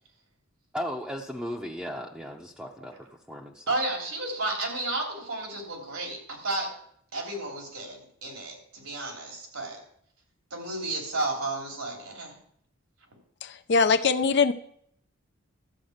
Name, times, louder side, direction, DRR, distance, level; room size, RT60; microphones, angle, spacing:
voice 1, 0.7-3.7, equal, 5° right, -2 dB, 0.7 m, -36 dB
voice 2, 3.7-6.7 7.1-9.8 10.5-12.4, right 2 dB, 85° right, 0 dB, 3.4 m, -32 dB
voice 3, 13.4-14.5, left 5 dB, 55° left, 9 dB, 0.6 m, -22 dB
13.0 x 4.6 x 8.0 m, 0.67 s
head